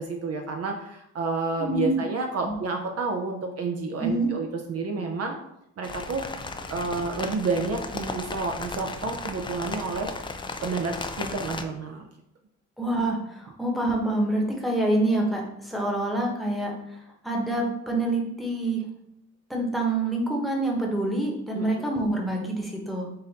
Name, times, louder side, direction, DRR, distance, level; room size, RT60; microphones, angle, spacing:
voice 1, 0.0-5.4 5.8-6.2 6.7-10.1 10.6-12.1 21.5-21.9, right 4 dB, 55° right, 3 dB, 0.6 m, -30 dB
voice 2, 1.6-2.0 2.4-2.5 4.0-4.3 12.8-17.0 17.2-18.8 19.5-23.1, right 1 dB, ahead, -1 dB, 1.1 m, -26 dB
sound 1, 5.8-11.6, left 3 dB, 15° left, 0.3 m, -35 dB
3.9 x 2.6 x 4.1 m, 0.79 s
cardioid pair, 90°, 30 cm